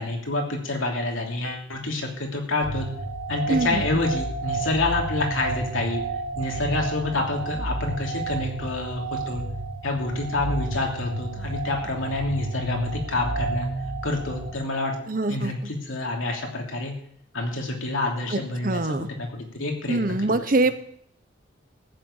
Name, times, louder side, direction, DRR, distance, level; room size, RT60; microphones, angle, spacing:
voice 1, 0.0-2.9 3.3-6.0 6.4-9.5 9.8-13.7 14.0-15.0 15.3-16.9 17.3-20.5, left 2 dB, 85° left, 1 dB, 3.0 m, -28 dB
sound 1, 2.6-14.5, right 2 dB, 85° right, 2.0 m, -31 dB
voice 2, 3.5-3.8 15.1-15.5 18.3-19.1 19.9-20.7, right 2 dB, 45° right, 12 dB, 0.9 m, -24 dB
14.5 x 6.7 x 8.8 m, 0.66 s
head